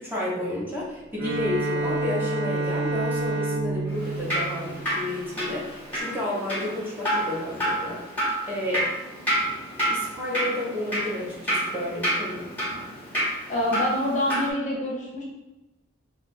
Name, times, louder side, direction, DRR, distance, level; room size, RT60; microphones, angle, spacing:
voice 1, 0.0-8.9 9.9-12.4, left 1 dB, 10° right, -6 dB, 0.8 m, -31 dB
Bowed string instrument, 1.1-5.5, right 2 dB, 70° right, 0.5 m, -29 dB
Drip, 3.9-14.5, right 1 dB, 10° left, 1.2 m, -29 dB
voice 2, 13.5-15.2, left 1 dB, 40° left, -3 dB, 0.7 m, -26 dB
2.6 x 2.4 x 4.0 m, 0.98 s
head